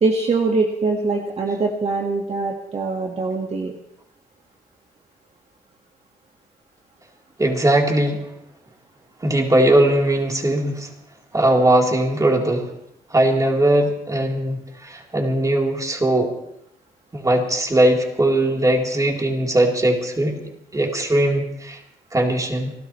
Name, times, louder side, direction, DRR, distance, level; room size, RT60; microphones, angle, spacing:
voice 1, 0.0-3.7, right 3 dB, 40° right, 0 dB, 1.9 m, -22 dB
voice 2, 7.4-8.3 9.2-10.9 11.3-12.7 13.1-16.3 17.1-20.4 20.7-21.8 22.1-22.7, right 1 dB, 20° right, 0 dB, 3.7 m, -19 dB
28.0 x 13.0 x 3.2 m, 0.80 s
cardioid pair, 70°, 16 cm